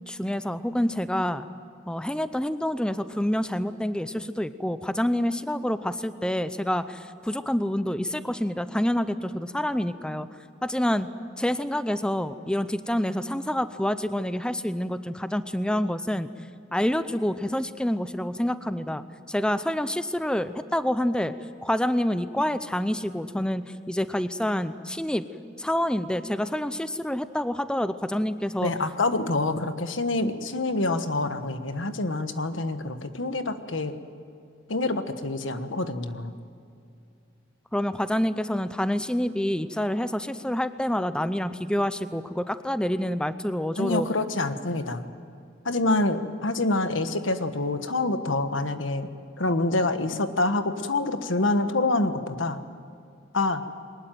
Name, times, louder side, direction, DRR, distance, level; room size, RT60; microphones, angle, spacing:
voice 1, 0.1-1.5 1.9-10.3 10.6-11.1 11.4-16.3 16.7-21.3 21.6-25.2 25.6-28.7 37.7-44.1, left 1 dB, 5° left, 12 dB, 0.6 m, -27 dB
voice 2, 28.6-33.9 34.7-36.3 43.8-45.1 45.6-49.1 49.4-52.6 53.3-53.6, left 2 dB, 85° left, 9 dB, 1.4 m, -26 dB
22.5 x 20.0 x 9.2 m, 2.5 s
head